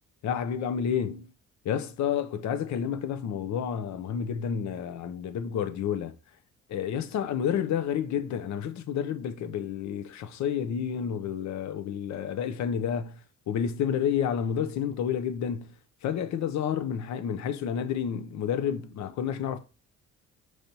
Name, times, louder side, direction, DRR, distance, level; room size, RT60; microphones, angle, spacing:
voice 1, 0.2-1.3 1.6-6.2 6.7-15.7 16.0-19.6, left 8 dB, 70° left, 0.6 m, -30 dB
5.1 x 3.2 x 2.8 m
cardioid pair, 90°, 30 cm